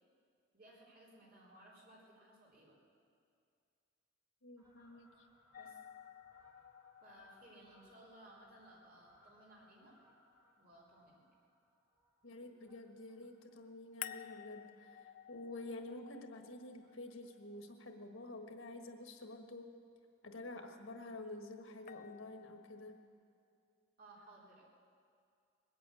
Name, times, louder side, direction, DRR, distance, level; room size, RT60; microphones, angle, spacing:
voice 1, 0.5-2.8 5.6-5.8 7.0-10.0 10.6-11.2 24.0-24.6, right 1 dB, 50° right, -4 dB, 3.7 m, -60 dB
voice 2, 4.4-5.1 12.2-19.7 20.2-23.0, left 2 dB, 85° left, 5 dB, 1.5 m, -49 dB
Fowl, 4.6-15.4 15.8-16.0 16.8-17.3 17.6-17.7 17.9-18.0 18.3-18.4 18.8-18.9 19.9-20.0 20.6-20.7, equal, 20° right, 2.6 m, -70 dB
sound 1, 5.5-10.5 14.0-18.1 21.9-23.1, left 11 dB, 45° left, 0.4 m, -54 dB
20.5 x 8.5 x 8.3 m, 2.4 s
head